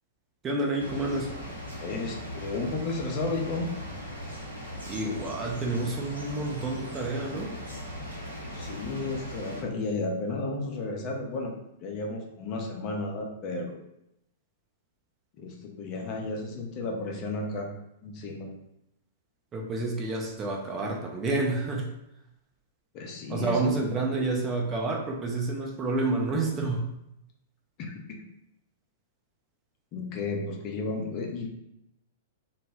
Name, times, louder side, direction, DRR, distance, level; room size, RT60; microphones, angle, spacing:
voice 1, 0.4-1.3 4.9-7.5 19.5-21.9 23.3-26.9, right 2 dB, 20° right, 0 dB, 0.5 m, -29 dB
sound 1, 0.8-9.6, equal, 90° right, 0.6 m, -39 dB
voice 2, 1.8-3.7 8.5-11.5 11.8-13.8 15.4-17.7 18.0-18.5 22.9-23.9 27.8-28.2 29.9-31.5, left 3 dB, 35° left, 1 dB, 0.4 m, -33 dB
2.1 x 2.0 x 3.2 m, 0.82 s
figure-of-eight pair, 100°, 0 cm